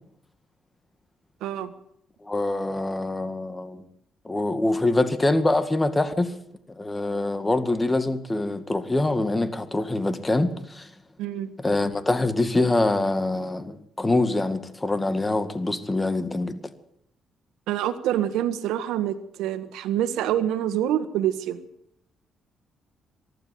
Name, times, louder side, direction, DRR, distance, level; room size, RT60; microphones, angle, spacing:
voice 1, 1.4-1.7 11.2-11.5 17.7-21.6, right 11 dB, 90° right, 1.5 m, -26 dB
voice 2, 2.2-3.8 4.2-6.3 6.8-10.9 11.6-16.6, left 2 dB, 15° left, 2.1 m, -24 dB
23.5 x 12.0 x 9.4 m
cardioid pair, 90°, 0 cm